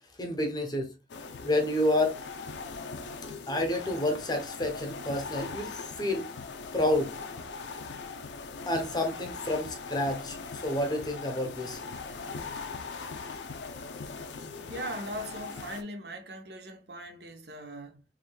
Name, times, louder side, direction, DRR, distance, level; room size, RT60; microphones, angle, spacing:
voice 1, 0.2-0.9 1.4-2.2 3.5-6.3 6.7-7.1 8.7-11.8, left 1 dB, 25° left, 0.8 m, -29 dB
sound 1, 1.1-15.8, left 4 dB, 85° left, 0.5 m, -40 dB
voice 2, 14.7-18.0, right 1 dB, 65° right, 0.8 m, -40 dB
3.6 x 3.2 x 2.2 m
head